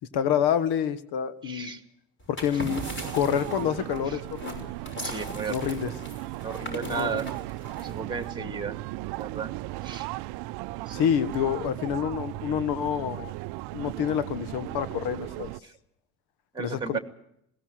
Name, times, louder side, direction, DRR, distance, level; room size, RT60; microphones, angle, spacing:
voice 1, 0.1-1.8 2.3-2.8 3.1-4.7 5.5-5.9 6.9-7.2 10.9-13.3 13.7-15.5 16.6-17.0, left 9 dB, 55° left, 15 dB, 1.6 m, -27 dB
voice 2, 1.4-1.8 4.1-4.2 4.9-5.7 6.4-7.3 7.8-8.8 9.2-9.5 9.8-10.1 10.8-11.0 15.6-15.7 16.5-17.0, right 5 dB, 10° right, 8 dB, 2.2 m, -34 dB
sound 1, 2.2-8.3, equal, 25° left, 6.1 m, -40 dB
sound 2, 2.7-15.6, right 19 dB, 55° right, 0.7 m, -37 dB
21.0 x 17.5 x 7.7 m, 0.77 s
hypercardioid pair, 65°, 47 cm